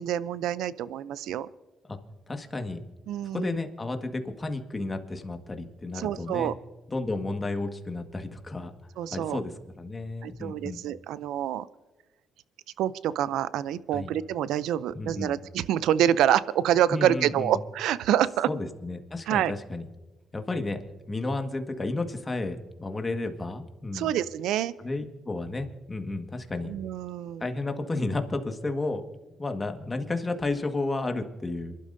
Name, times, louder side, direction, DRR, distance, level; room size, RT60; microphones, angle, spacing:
voice 1, 0.0-1.5 3.1-3.6 5.9-6.5 9.0-9.4 10.2-11.7 12.8-18.5 19.3-19.5 23.9-24.7 26.6-27.4, right 11 dB, 85° right, 17 dB, 0.5 m, -27 dB
voice 2, 2.3-2.8 3.3-6.5 6.9-8.7 9.1-10.8 13.9-14.1 14.9-15.3 16.9-17.6 18.5-19.8 20.3-20.8 21.1-24.1 24.8-26.7 27.4-29.0 29.4-31.8, left 2 dB, 25° left, 5 dB, 1.7 m, -32 dB
27.5 x 12.0 x 2.7 m, 1.2 s
cardioid pair, 90°, 0 cm